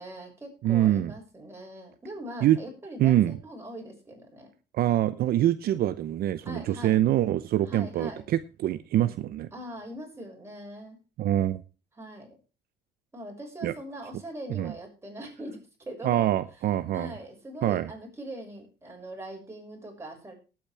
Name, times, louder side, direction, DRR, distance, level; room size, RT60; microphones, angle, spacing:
voice 1, 0.0-4.5 6.4-7.0 7.6-8.2 9.5-11.0 12.0-12.3 13.1-15.6 15.9-16.3 16.9-20.3, right 1 dB, 15° right, 6.6 m, -41 dB
voice 2, 0.6-1.1 2.4-2.6 3.0-3.4 4.7-9.5 11.2-11.6 13.6-13.7 14.5-14.7 16.0-17.2 17.6-17.9, right 12 dB, 65° right, 0.7 m, -25 dB
19.0 x 8.7 x 3.3 m
cardioid pair, 110°, 17 cm